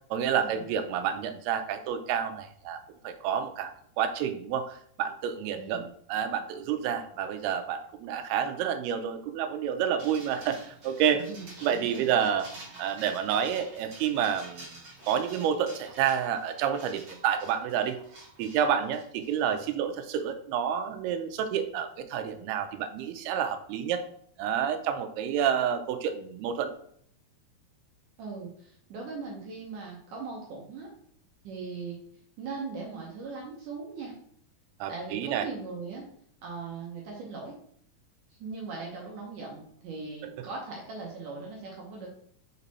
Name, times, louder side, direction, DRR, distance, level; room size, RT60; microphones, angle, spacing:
voice 1, 0.1-2.8 3.0-3.7 4.0-11.2 11.6-14.7 15.1-18.0 18.4-24.0 24.4-26.7 34.8-35.5, right 8 dB, 90° right, 8 dB, 2.6 m, -29 dB
voice 2, 5.5-5.9 11.1-12.1 28.2-30.9 31.4-32.0 32.4-34.1 34.9-36.1 36.4-37.6 38.3-42.1, right 4 dB, 65° right, -2 dB, 2.2 m, -39 dB
sound 1, 10.0-19.5, right 2 dB, 45° right, 2.1 m, -49 dB
6.1 x 4.0 x 4.2 m, 0.63 s
omnidirectional pair, 4.5 m